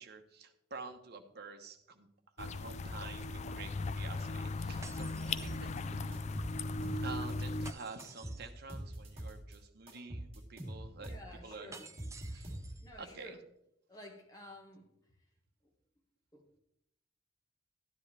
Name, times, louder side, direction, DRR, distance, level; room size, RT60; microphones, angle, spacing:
voice 1, 0.0-2.1 2.4-6.2 7.0-11.8 12.3-12.5 13.0-13.4, right 4 dB, 55° right, 6 dB, 1.0 m, -49 dB
sound 1, 2.4-7.7, left 3 dB, 35° left, 0.3 m, -38 dB
sound 2, 4.8-6.1 7.6-8.6 11.7-12.9, right 4 dB, 15° right, 0.5 m, -53 dB
sound 3, 5.4-5.8 6.1-7.7 8.0-9.6 9.9-13.0, right 1 dB, 30° right, 2.7 m, -44 dB
voice 2, 11.0-11.9 12.8-13.4 13.9-14.9 16.3-16.6, left 1 dB, 20° left, 0 dB, 1.6 m, -52 dB
12.0 x 9.9 x 3.4 m, 0.80 s
head